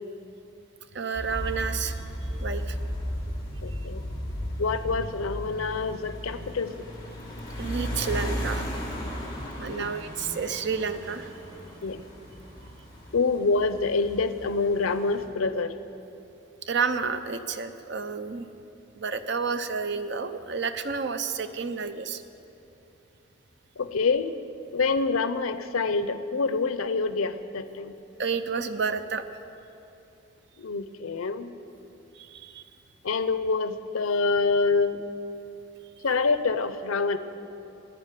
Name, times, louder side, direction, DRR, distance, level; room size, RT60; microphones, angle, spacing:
voice 1, 0.9-2.0 2.4-2.8 7.6-8.7 9.6-11.3 16.6-18.5 19.0-22.2 28.2-29.2 32.1-32.7, right 5 dB, 55° right, 9 dB, 0.7 m, -30 dB
sound 1, 1.1-15.2, equal, 20° left, 2.5 m, -35 dB
voice 2, 3.6-4.0 4.6-6.9 9.7-9.9 11.8-12.0 13.1-15.8 20.5-20.6 23.8-24.3 24.7-27.9 30.6-31.5 33.0-35.0 36.0-37.2, left 4 dB, 85° left, 12 dB, 0.7 m, -26 dB
11.5 x 10.0 x 9.2 m, 2.9 s
head